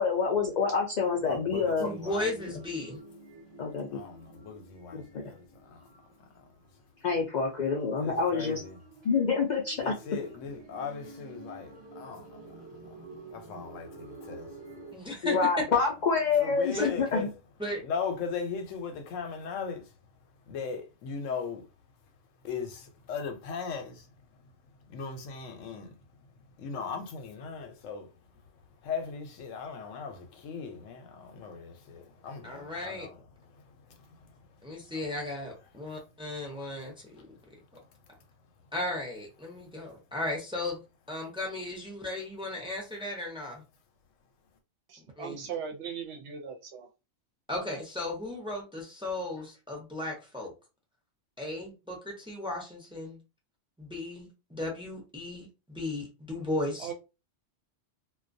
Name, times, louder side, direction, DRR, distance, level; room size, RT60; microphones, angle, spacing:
voice 1, 0.0-1.9 3.6-4.0 4.9-5.0 7.0-8.6 9.0-9.9 15.2-17.3, left 5 dB, 65° left, 0.4 m, -27 dB
voice 2, 1.2-2.3 3.9-5.9 6.3-6.4 8.0-8.8 9.8-15.1 16.4-17.3 17.8-19.9 20.5-21.7 22.4-24.1 24.9-26.0 26.6-28.1 28.8-33.2 33.5-34.3, left 5 dB, 85° left, 1.0 m, -39 dB
voice 3, 1.8-3.0 14.9-15.4 16.7-16.9 17.1-17.2 17.6-17.8 32.4-33.1 34.6-37.3 38.7-40.8 41.1-43.6 45.2-45.5 47.5-50.5 51.4-53.2 53.8-56.9, left 1 dB, 5° right, 0.5 m, -36 dB
sound 1, 1.8-7.0 7.8-14.9, right 3 dB, 25° right, 0.9 m, -49 dB
voice 4, 44.9-46.9 56.8-56.9, right 7 dB, 65° right, 0.8 m, -38 dB
2.2 x 2.2 x 2.5 m
omnidirectional pair, 1.3 m